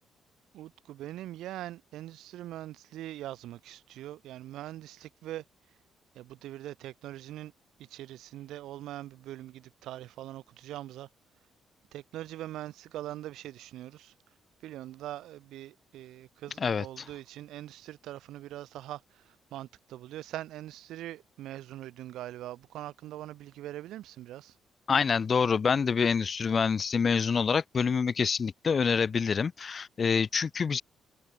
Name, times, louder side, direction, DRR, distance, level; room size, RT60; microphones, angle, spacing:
voice 1, 0.5-5.4 6.1-7.5 7.8-11.1 11.9-14.1 14.6-24.6, right 14 dB, 85° right, 4.6 m, -42 dB
voice 2, 24.9-30.8, left 6 dB, 40° left, 0.4 m, -26 dB
cardioid pair, 90°, 0 cm